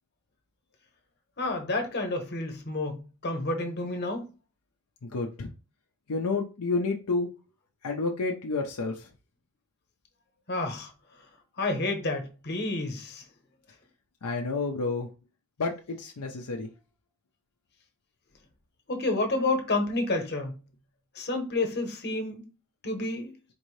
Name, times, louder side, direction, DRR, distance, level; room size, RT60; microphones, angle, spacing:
voice 1, 1.4-4.3 10.5-10.9 11.6-13.2 18.9-20.5 21.1-22.4 22.8-23.3, left 2 dB, 50° left, 1.0 m, -29 dB
voice 2, 5.1-5.5 6.1-7.3 7.8-9.1 14.2-15.1 15.6-16.7, left 3 dB, 85° left, 0.6 m, -30 dB
4.4 x 2.6 x 3.1 m
head